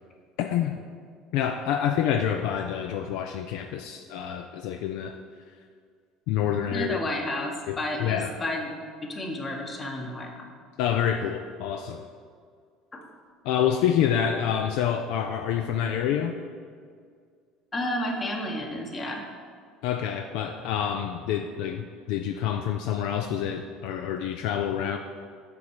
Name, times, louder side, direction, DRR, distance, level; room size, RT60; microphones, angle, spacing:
voice 1, 0.4-0.8 1.3-5.1 6.3-7.0 7.7-8.3 10.8-12.0 13.4-16.3 19.8-25.0, left 9 dB, 70° left, 6 dB, 0.3 m, -27 dB
voice 2, 6.7-8.7 9.0-10.5 12.9-13.0 17.7-19.3, left 1 dB, 30° left, 2 dB, 1.3 m, -31 dB
6.9 x 5.2 x 4.7 m, 2.1 s
hypercardioid pair, 70°, 0 cm